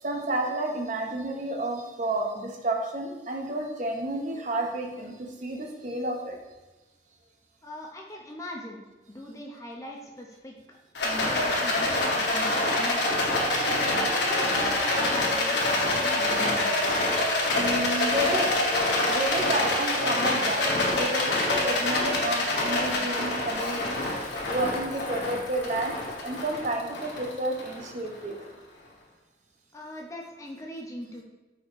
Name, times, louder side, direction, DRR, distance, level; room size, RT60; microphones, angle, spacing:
voice 1, 0.0-6.4 17.6-18.7 19.1-24.1 24.5-26.0 26.2-28.4, right 1 dB, 40° right, 2 dB, 0.5 m, -31 dB
voice 2, 7.6-8.8 9.1-10.8 11.0-13.2 13.9-16.9 29.7-31.2, left 1 dB, 15° left, 0 dB, 0.5 m, -40 dB
Rattle, 10.9-28.3, left 2 dB, 80° left, 0.9 m, -26 dB
4.7 x 4.2 x 2.5 m, 1.1 s
head